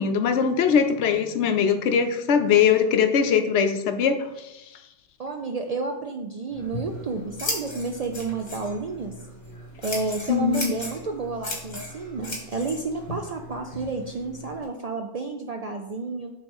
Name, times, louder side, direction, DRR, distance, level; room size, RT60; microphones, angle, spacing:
voice 1, 0.0-4.5 10.3-10.8, left 7 dB, 75° left, 7 dB, 0.9 m, -21 dB
voice 2, 5.2-9.1 9.8-16.3, right 3 dB, 60° right, 3 dB, 0.4 m, -31 dB
Scissors, 6.5-14.6, left 1 dB, 35° left, 1.7 m, -36 dB
6.9 x 3.3 x 5.3 m, 0.89 s
omnidirectional pair, 1.2 m